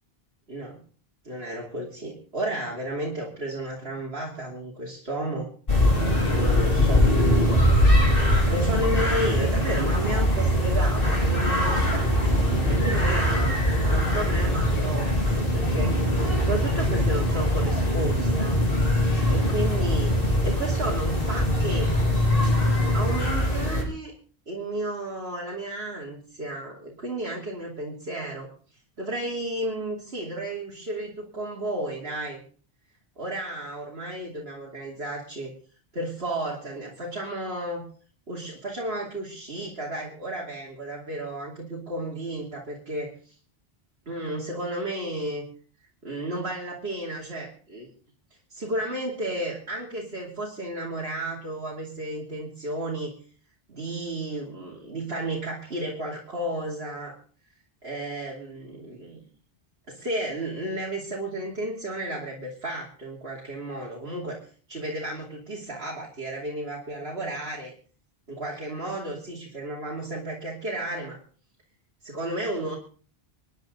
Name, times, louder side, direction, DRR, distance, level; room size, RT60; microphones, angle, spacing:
voice 1, 0.5-0.8 1.2-5.5 6.2-7.7 8.5-12.1 12.7-16.1 16.4-18.6 19.3-20.1 20.4-22.0 22.9-24.1 24.5-28.5 29.0-32.4 33.2-35.5 35.9-37.8 38.3-43.3 44.1-45.4 46.0-47.9 48.5-53.1 53.7-57.2 57.8-59.2 59.9-67.7 68.3-71.2 72.0-72.7, right 1 dB, 75° right, -3 dB, 3.1 m, -33 dB
sound 1, 5.7-23.8, left 1 dB, 60° left, 3.6 m, -22 dB
27.0 x 10.5 x 3.9 m, 0.42 s
omnidirectional pair, 1.0 m